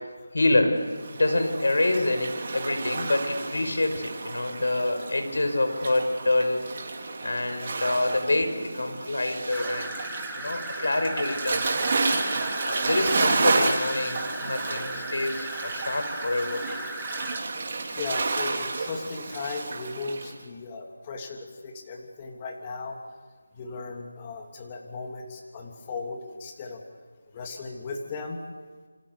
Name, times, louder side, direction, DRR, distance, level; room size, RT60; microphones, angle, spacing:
voice 1, 0.3-0.7 1.1-6.6 7.2-10.0 10.4-11.8 12.3-16.6, left 2 dB, 75° left, 7 dB, 5.7 m, -26 dB
Waves surf, 0.9-20.3, right 3 dB, 40° right, 3.4 m, -31 dB
sound 1, 9.5-17.4, equal, ahead, 1.4 m, -38 dB
voice 2, 17.9-23.0 23.5-26.8 27.3-28.4, left 4 dB, 20° left, 2 dB, 3.1 m, -36 dB
28.5 x 26.0 x 6.8 m, 1.5 s
figure-of-eight pair, 170°, 0 cm